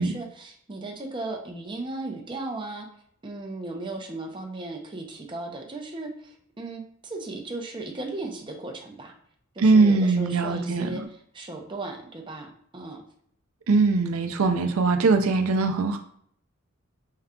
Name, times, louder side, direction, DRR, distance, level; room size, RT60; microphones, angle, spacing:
voice 1, 0.0-2.9 3.2-9.1 9.5-13.0, right 2 dB, 25° right, 1 dB, 0.6 m, -36 dB
voice 2, 9.6-10.9 13.7-16.0, right 3 dB, 85° right, 6 dB, 0.5 m, -21 dB
5.4 x 2.3 x 3.7 m, 0.64 s
head